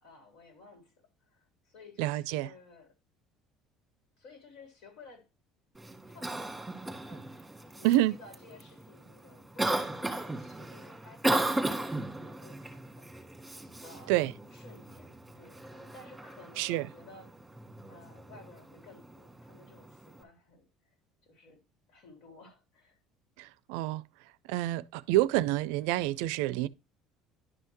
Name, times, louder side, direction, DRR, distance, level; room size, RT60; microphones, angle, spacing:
voice 1, 0.0-2.9 4.2-5.3 6.0-13.1 13.8-14.2 14.5-20.9 21.2-21.6 21.9-23.0, left 3 dB, 75° left, 3.5 m, -55 dB
voice 2, 2.0-2.5 7.8-8.2 14.1-14.3 16.6-16.9 23.4-24.0 24.5-26.7, right 15 dB, 90° right, 0.4 m, -28 dB
Cough, 5.7-20.2, right 2 dB, 5° right, 1.6 m, -37 dB
11.0 x 5.7 x 3.1 m
cardioid pair, 135°, 0 cm